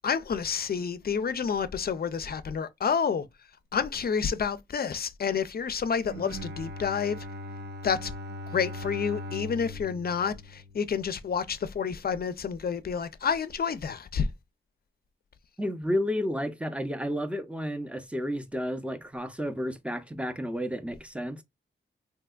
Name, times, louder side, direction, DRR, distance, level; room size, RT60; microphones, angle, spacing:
voice 1, 0.0-3.3 3.7-7.3 7.8-8.1 8.5-14.3, left 6 dB, 50° left, 0.5 m, -29 dB
Bowed string instrument, 6.0-11.3, left 1 dB, 55° right, 0.6 m, -40 dB
voice 2, 15.6-21.4, equal, 5° right, 0.5 m, -31 dB
3.3 x 2.8 x 2.2 m
wide cardioid pair, 85°, 21 cm